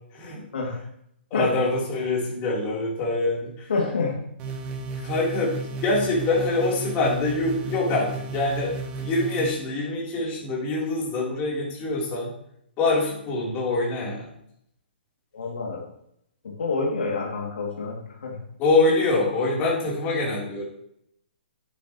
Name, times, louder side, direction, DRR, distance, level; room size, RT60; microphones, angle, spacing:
voice 1, 1.3-3.7 5.0-12.3 12.8-14.3 18.6-20.6, left 2 dB, 25° left, -4 dB, 3.9 m, -25 dB
voice 2, 3.7-4.2 15.3-15.8 16.4-18.4, left 3 dB, 70° left, -2 dB, 2.9 m, -27 dB
sound 1, 4.4-9.5, right 3 dB, 25° right, 1.4 m, -33 dB
10.0 x 9.9 x 3.2 m, 0.72 s
hypercardioid pair, 135°, 6 cm